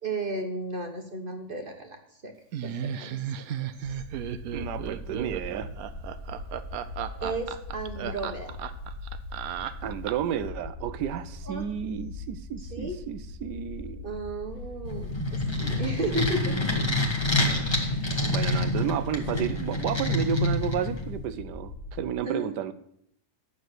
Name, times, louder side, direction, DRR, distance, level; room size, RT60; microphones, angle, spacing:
voice 1, 0.0-2.3 2.6-3.2 3.6-3.7 7.1-8.6 11.5-11.7 12.6-13.0 14.0-16.6 18.0-18.1 22.2-22.5, right 2 dB, 35° right, 3 dB, 1.2 m, -34 dB
Laughter, 2.5-10.4, right 9 dB, 70° right, 1.0 m, -34 dB
sound 1, 3.8-22.0, left 3 dB, 40° left, 0.9 m, -41 dB
voice 2, 4.5-5.7 9.8-14.1 18.3-22.7, right 9 dB, 85° right, 13 dB, 1.3 m, -32 dB
sound 2, 14.9-21.2, left 2 dB, 15° left, 1.5 m, -27 dB
9.5 x 7.0 x 7.8 m, 0.70 s
omnidirectional pair, 1.8 m